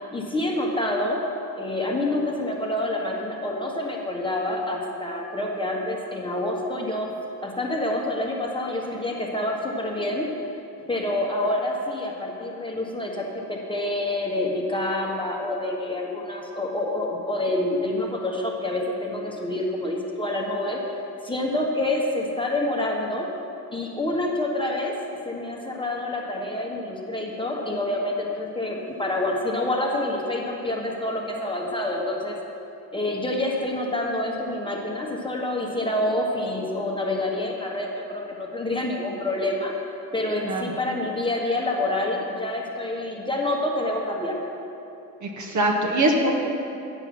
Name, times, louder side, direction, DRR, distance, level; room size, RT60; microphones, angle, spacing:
voice 1, 0.1-1.2 1.6-7.1 7.4-10.3 10.9-20.8 21.2-23.3 23.7-25.0 25.2-32.4 32.9-39.7 40.1-44.4, left 1 dB, 10° left, -1 dB, 1.5 m, -27 dB
voice 2, 45.2-46.3, right 1 dB, 35° right, 1 dB, 1.6 m, -23 dB
9.2 x 7.6 x 6.1 m, 2.8 s
figure-of-eight pair, 55°, 48 cm